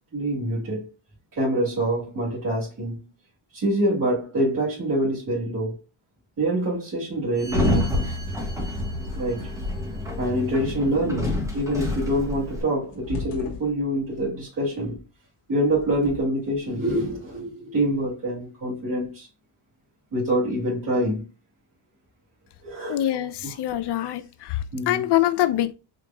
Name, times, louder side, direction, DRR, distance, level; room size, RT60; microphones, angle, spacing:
voice 1, 0.1-0.9 1.3-3.0 3.5-5.8 6.4-8.2 9.1-9.5 10.2-15.0 15.5-19.3 20.1-21.3 22.6-23.0 23.4-23.6 24.7-25.1, right 1 dB, 40° right, 2.3 m, -25 dB
Sliding door, 7.4-12.6, left 1 dB, 5° right, 1.2 m, -28 dB
sound 1, 12.3-14.3 15.6-16.6, left 2 dB, 70° left, 1.5 m, -37 dB
voice 2, 22.9-24.6 24.9-25.7, left 13 dB, 55° left, 0.5 m, -24 dB
5.1 x 2.9 x 2.2 m
cardioid pair, 110°, 49 cm